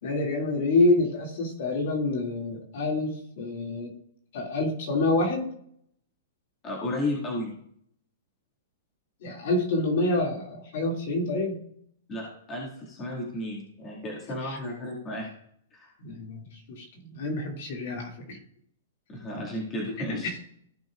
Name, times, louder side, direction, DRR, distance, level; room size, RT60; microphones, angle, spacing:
voice 1, 0.0-3.9 4.3-5.5 9.2-11.6 14.5-14.6 16.0-18.4 20.1-20.4, left 2 dB, 50° left, 0 dB, 2.4 m, -27 dB
voice 2, 6.6-7.5 12.1-15.3 15.7-15.9 19.1-20.3, left 1 dB, 15° left, -3 dB, 2.1 m, -33 dB
15.5 x 6.0 x 2.5 m, 0.67 s
hypercardioid pair, 175°, 0 cm